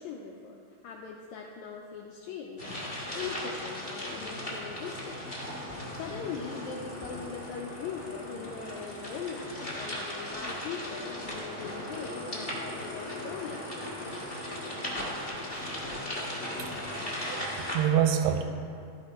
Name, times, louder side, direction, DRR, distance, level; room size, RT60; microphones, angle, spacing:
voice 1, 0.0-5.3 5.7-13.6, left 5 dB, 80° left, 0 dB, 1.7 m, -41 dB
sound 1, 2.6-17.7, left 1 dB, 25° left, 1.2 m, -37 dB
voice 2, 16.6-17.0 17.3-18.4, right 9 dB, 80° right, 6 dB, 1.8 m, -27 dB
13.5 x 5.3 x 4.2 m, 2.4 s
omnidirectional pair, 3.8 m